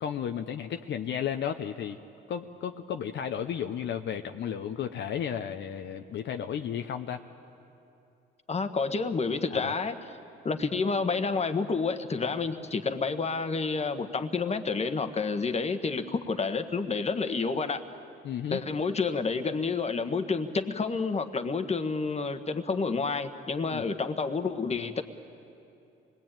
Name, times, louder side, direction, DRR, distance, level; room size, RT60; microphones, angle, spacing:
voice 1, 0.0-2.0 2.3-7.2 9.5-9.7 18.2-18.6 23.7-23.8, left 8 dB, 65° left, 6 dB, 0.8 m, -33 dB
voice 2, 8.5-10.0 10.4-17.8 18.5-25.0, left 4 dB, 35° left, 8 dB, 1.4 m, -29 dB
25.5 x 20.0 x 9.0 m, 2.7 s
cardioid pair, 90°, 20 cm